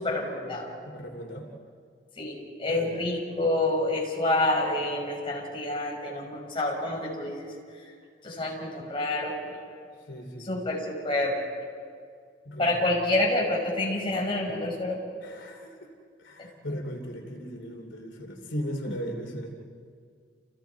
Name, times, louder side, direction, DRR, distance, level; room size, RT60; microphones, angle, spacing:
voice 1, 0.0-0.7 2.2-7.9 8.2-9.6 10.4-11.4 12.6-15.0 16.4-16.5 18.9-19.0, left 2 dB, 30° left, -2 dB, 6.0 m, -28 dB
voice 2, 0.9-1.5 2.7-3.0 10.1-10.5 12.4-12.8 15.2-15.9 16.2-19.5, equal, 85° left, 2 dB, 3.0 m, -37 dB
30.0 x 29.5 x 4.6 m, 2.2 s
head